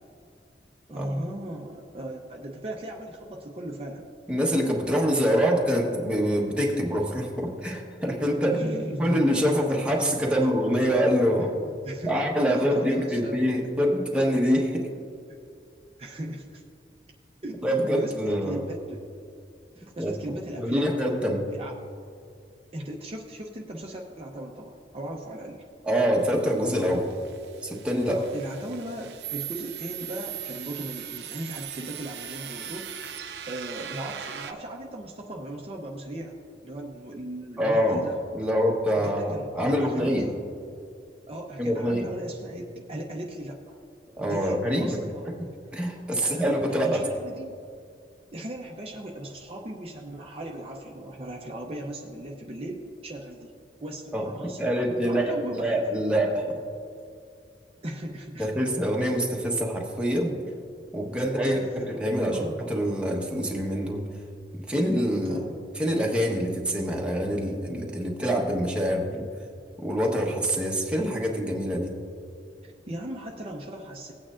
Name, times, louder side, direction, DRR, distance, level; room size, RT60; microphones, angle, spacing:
voice 1, 0.9-4.1 8.4-9.5 11.4-13.4 16.0-16.6 17.4-19.1 19.8-21.0 21.5-21.8 22.7-25.6 28.1-32.9 33.5-38.2 39.0-40.4 41.3-43.8 44.2-45.3 46.2-46.4 46.8-47.5 48.3-53.5 53.8-56.0 57.8-58.5 61.4-62.6 65.2-65.5 72.6-74.1, right 1 dB, 35° right, -1 dB, 0.7 m, -37 dB
voice 2, 4.3-8.6 9.0-11.6 12.1-14.9 17.6-18.6 20.0-21.5 25.8-27.1 27.6-28.2 37.6-38.0 38.3-40.3 41.6-42.1 44.2-45.0 45.7-47.0 54.1-54.3 54.6-56.6 58.4-60.4 60.9-61.6 62.0-64.1 64.5-65.4 65.8-69.3 69.8-71.9, equal, 5° right, -1 dB, 1.1 m, -25 dB
sound 1, 26.2-34.5, right 10 dB, 70° right, 0.6 m, -39 dB
18.0 x 8.8 x 2.5 m, 2.4 s
head